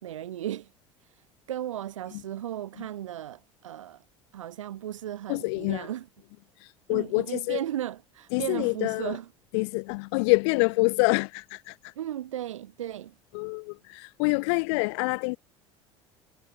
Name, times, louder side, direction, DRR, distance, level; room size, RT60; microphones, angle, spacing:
voice 1, 0.0-0.7 1.0-4.0 4.3-6.1 6.9-9.3 12.0-13.1, right 12 dB, 75° right, 5.1 m, -35 dB
voice 2, 5.3-5.9 6.6-7.6 8.3-9.2 9.5-11.9 13.3-15.4, left 30 dB, 60° left, 2.6 m, -26 dB
figure-of-eight pair, 65°, 17 cm